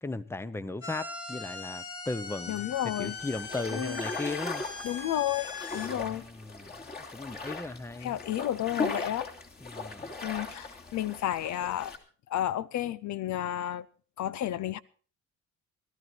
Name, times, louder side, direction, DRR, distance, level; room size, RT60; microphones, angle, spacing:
voice 1, 0.0-2.7 3.0-4.6 5.8-6.7 7.1-8.2 9.6-10.1, left 2 dB, 10° left, 0.8 m, -37 dB
sound 1, 0.8-5.9, left 4 dB, 50° left, 2.2 m, -40 dB
voice 2, 2.5-3.2 3.7-4.0 4.8-6.2 8.0-9.3 10.2-11.9 12.3-13.9 14.2-14.8, left 12 dB, 70° left, 0.6 m, -32 dB
sound 2, 3.0-12.0, left 3 dB, 30° left, 2.7 m, -39 dB
17.0 x 12.5 x 4.4 m
cardioid pair, 90°, 30 cm